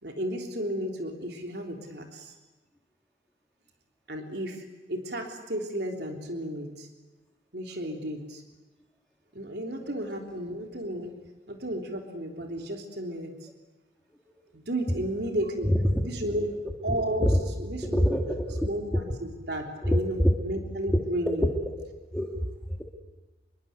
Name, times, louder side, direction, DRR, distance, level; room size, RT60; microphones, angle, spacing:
voice 1, 0.0-2.3 4.1-6.9 7.5-8.4 9.3-11.1 11.5-13.5 14.5-15.7 16.0-16.5 16.8-17.3 17.6-18.1 18.6-21.5, right 1 dB, 70° right, 3 dB, 3.4 m, -33 dB
voice 2, 15.6-16.1 17.2-17.3 17.8-19.0 19.8-20.3 22.1-22.8, equal, 5° left, 0 dB, 2.3 m, -25 dB
27.5 x 23.0 x 8.2 m, 1.2 s
head